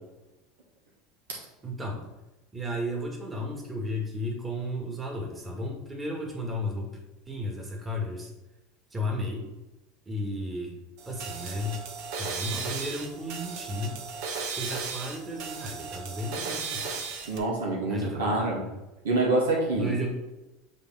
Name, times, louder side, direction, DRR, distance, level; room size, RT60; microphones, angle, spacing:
voice 1, 1.6-2.1 2.5-6.9 7.3-8.3 8.9-9.5 10.1-10.7 11.1-11.9 12.2-14.0 14.5-16.8 17.9-18.5 19.7-20.2, left 1 dB, 20° right, 0 dB, 2.1 m, -33 dB
sound 1, 11.0-17.4, right 5 dB, 65° right, 1.2 m, -36 dB
voice 2, 17.3-18.6 19.0-20.0, right 2 dB, 80° right, -2 dB, 2.0 m, -26 dB
6.7 x 3.7 x 6.1 m, 1.0 s
hypercardioid pair, 85°, 0 cm